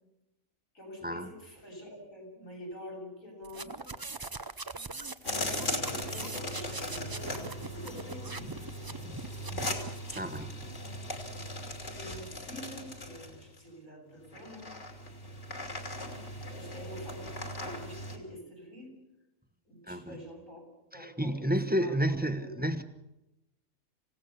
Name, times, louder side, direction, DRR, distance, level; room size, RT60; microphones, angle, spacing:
voice 1, 0.7-3.9 5.4-8.6 11.5-14.7 16.5-18.9 19.6-20.7 20.9-22.6, equal, 85° left, -1 dB, 7.8 m, -47 dB
sound 1, 3.4-10.5, right 3 dB, 25° right, 0.6 m, -42 dB
sound 2, 5.2-13.6 14.3-18.2, left 1 dB, 60° left, 3.3 m, -38 dB
voice 2, 10.1-10.6 19.9-20.2 20.9-22.8, equal, 10° right, 10 dB, 1.0 m, -31 dB
27.0 x 17.0 x 7.0 m, 0.88 s
omnidirectional pair, 1.3 m